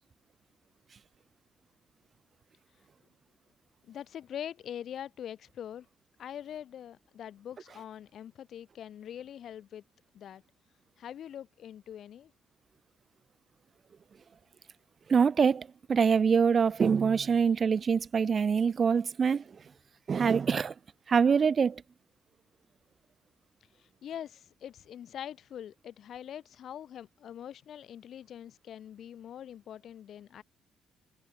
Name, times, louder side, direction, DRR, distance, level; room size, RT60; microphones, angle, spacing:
voice 1, 3.8-5.9 6.2-9.8 10.1-10.4 11.0-12.3 23.8-30.4, left 10 dB, 65° left, 1.1 m, -43 dB
voice 2, 15.1-19.4 20.1-20.7 21.1-21.8, right 6 dB, 45° right, 0.3 m, -25 dB
cardioid pair, 90°, 0 cm